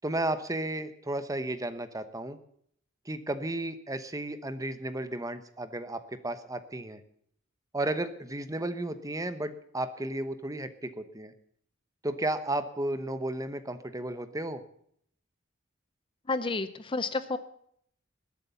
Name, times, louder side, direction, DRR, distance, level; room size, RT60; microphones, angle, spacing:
voice 1, 0.0-2.4 3.1-7.0 7.7-11.3 12.0-14.6, right 1 dB, 15° right, 11 dB, 1.0 m, -33 dB
voice 2, 16.3-17.4, left 3 dB, 25° left, 12 dB, 0.6 m, -30 dB
20.5 x 8.3 x 6.9 m, 0.66 s
head